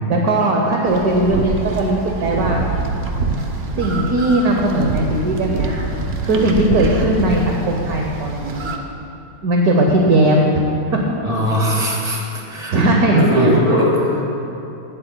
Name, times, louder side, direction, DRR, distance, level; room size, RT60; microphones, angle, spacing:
voice 1, 0.1-2.6 3.8-5.9 6.2-8.7 9.4-10.5 12.7-13.5, right 1 dB, 55° right, 0 dB, 1.2 m, -18 dB
sound 1, 0.8-8.8, right 3 dB, 90° right, 0.5 m, -25 dB
voice 2, 11.2-12.2 12.5-14.2, equal, 15° right, -3 dB, 1.8 m, -19 dB
17.0 x 12.0 x 2.2 m, 2.9 s
omnidirectional pair, 2.3 m